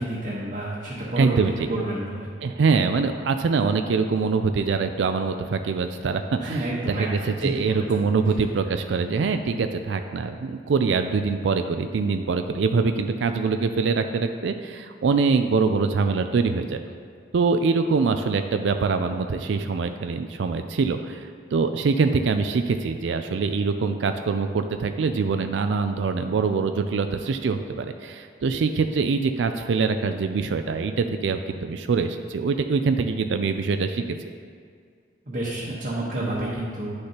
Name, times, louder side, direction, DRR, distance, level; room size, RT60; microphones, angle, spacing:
voice 1, 0.0-2.3 6.4-7.9 35.3-36.9, right 1 dB, 50° right, -7 dB, 1.2 m, -29 dB
voice 2, 1.2-1.7 2.4-16.8 17.3-34.0, right 4 dB, 75° right, 8 dB, 0.4 m, -24 dB
9.6 x 6.4 x 2.9 m, 2.1 s
head